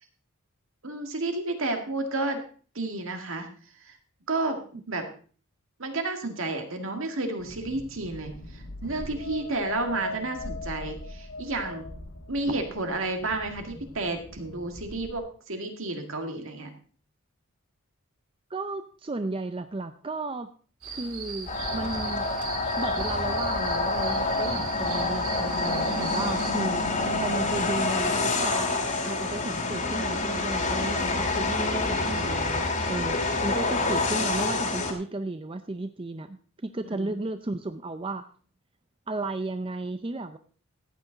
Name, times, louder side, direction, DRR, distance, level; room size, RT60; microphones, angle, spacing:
voice 1, 0.8-2.4 2.8-3.5 3.8-4.0 4.3-5.0 5.8-11.9 12.3-16.7 30.9-31.3 36.9-37.2, right 2 dB, 65° right, 5 dB, 2.0 m, -31 dB
sound 1, 7.4-15.2, left 3 dB, 55° left, 1.9 m, -40 dB
voice 2, 18.5-20.5 20.9-22.3 22.8-28.7 29.1-36.4 36.6-38.2 39.1-40.4, right 2 dB, 25° right, 9 dB, 0.5 m, -34 dB
sound 2, 20.8-26.5, right 4 dB, 80° right, 3.6 m, -38 dB
sound 3, 21.5-34.9, left 3 dB, 35° left, 2.0 m, -27 dB
14.5 x 8.9 x 4.0 m, 0.41 s
head